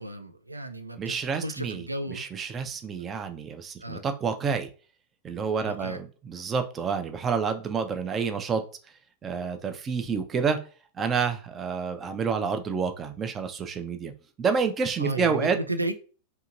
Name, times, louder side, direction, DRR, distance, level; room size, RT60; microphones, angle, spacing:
voice 1, 0.0-2.2 3.8-4.0 5.7-6.0 15.0-15.9, right 1 dB, 85° right, 0.3 m, -34 dB
voice 2, 1.0-4.7 5.2-8.6 9.2-10.6 10.9-14.1 14.4-15.6, right 5 dB, 25° right, 0.4 m, -29 dB
2.8 x 2.7 x 2.5 m
figure-of-eight pair, 90°, 0 cm